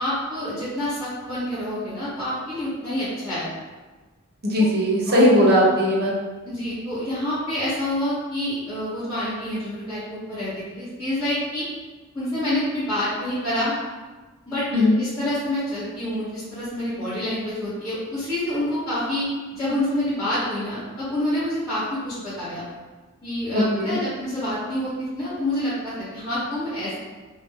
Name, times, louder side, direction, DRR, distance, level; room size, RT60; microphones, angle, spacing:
voice 1, 0.0-3.5 4.6-4.7 5.1-5.3 6.4-11.7 12.1-13.8 14.5-22.6 23.2-26.9, left 1 dB, 15° left, -18 dB, 1.4 m, -27 dB
voice 2, 4.4-6.1 14.7-15.0 23.5-23.9, equal, 50° right, -3 dB, 0.7 m, -18 dB
2.9 x 2.4 x 3.6 m, 1.3 s
head